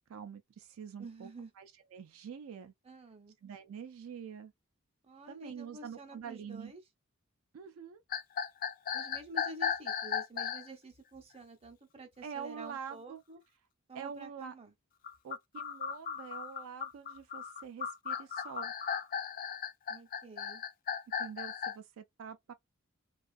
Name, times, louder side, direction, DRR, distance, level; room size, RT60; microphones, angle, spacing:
voice 1, 0.0-1.3 1.6-2.7 3.4-4.5 5.3-6.7 7.5-8.0 12.2-13.2 13.9-14.5 15.2-18.7 21.2-22.5, right 7 dB, 70° right, 0.3 m, -45 dB
voice 2, 1.0-1.5 2.8-3.4 5.0-6.8 8.9-13.4 13.9-14.7 19.9-20.6, right 2 dB, 30° right, 0.7 m, -49 dB
sound 1, 8.1-10.7 15.0-21.8, left 7 dB, 40° left, 0.4 m, -36 dB
2.4 x 2.3 x 2.4 m
head